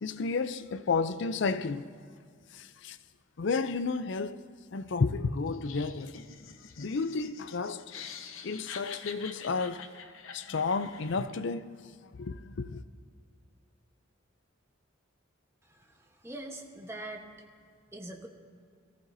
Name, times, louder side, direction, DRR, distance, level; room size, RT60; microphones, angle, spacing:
voice 1, 0.0-1.9 2.5-3.0 3.4-4.4 4.7-6.2 6.8-7.9 8.4-10.1 10.3-11.7 12.1-12.8, left 4 dB, 60° left, 0.5 m, -32 dB
Laughter, 5.5-11.3, left 6 dB, 80° left, 0.8 m, -46 dB
voice 2, 16.2-17.2 17.9-18.3, right 1 dB, 15° right, 1.1 m, -42 dB
22.5 x 14.5 x 2.7 m
head